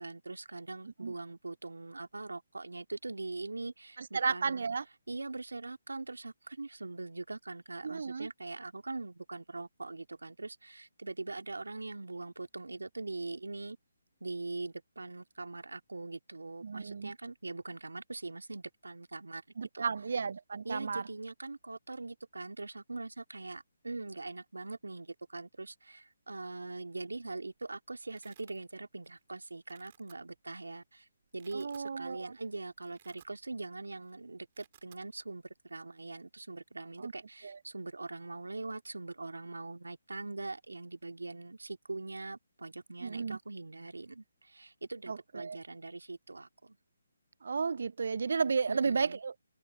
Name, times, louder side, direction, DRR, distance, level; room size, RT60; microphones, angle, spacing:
voice 1, 0.0-4.6 5.1-13.8 14.2-19.4 19.7-19.9 20.6-31.1 31.3-46.8 48.7-49.2, right 3 dB, 80° right, 2.3 m, -42 dB
voice 2, 4.0-4.8 7.8-8.3 16.6-17.1 19.6-21.0 31.5-32.4 37.0-37.1 37.4-37.6 43.0-43.4 45.1-45.6 47.4-49.3, right 5 dB, 60° right, 0.4 m, -33 dB
Domestic sounds home sounds, 27.4-27.5 27.7-28.6 29.0-29.3 29.6-30.1 30.8-30.9 31.2-31.9 32.3-32.4 32.7-33.7 33.9-34.1 34.4-35.0, right 11 dB, 40° right, 4.8 m, -62 dB
figure-of-eight pair, 145°, 0 cm